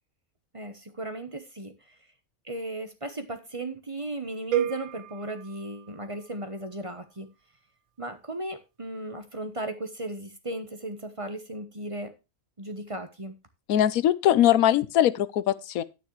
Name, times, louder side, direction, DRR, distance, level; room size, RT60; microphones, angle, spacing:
voice 1, 0.5-2.0 2.4-7.3 8.0-12.1 12.6-13.3, right 1 dB, 25° right, 1.0 m, -36 dB
sound 1, 4.5-6.6, right 10 dB, 85° right, 1.3 m, -32 dB
voice 2, 13.7-15.8, left 11 dB, 90° left, 1.1 m, -21 dB
9.8 x 9.4 x 3.2 m
omnidirectional pair, 1.4 m